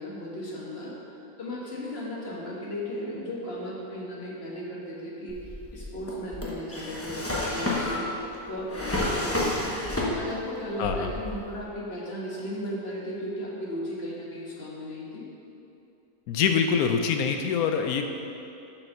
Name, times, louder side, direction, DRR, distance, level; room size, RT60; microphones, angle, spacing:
voice 1, 0.0-5.4 5.7-8.0 8.4-9.7 10.1-15.3, equal, 45° left, -4 dB, 1.6 m, -36 dB
Drawer open or close, 5.3-10.5 10.8-11.6, left 1 dB, 10° left, 0.9 m, -30 dB
voice 2, 16.3-18.0, left 6 dB, 75° left, 5 dB, 1.0 m, -24 dB
7.3 x 5.1 x 6.4 m, 2.8 s
omnidirectional pair, 1.6 m